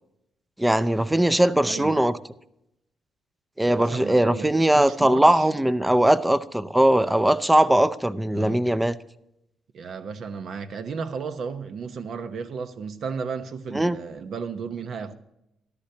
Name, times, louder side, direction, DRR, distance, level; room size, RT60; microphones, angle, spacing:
voice 1, 0.6-2.2 3.6-9.0 13.7-14.0, right 1 dB, 10° right, 0.6 m, -20 dB
voice 2, 1.7-2.0 3.7-5.5 8.3-8.6 9.7-15.2, right 5 dB, 60° right, 0.9 m, -34 dB
13.5 x 11.5 x 2.8 m
cardioid pair, 90°, 0 cm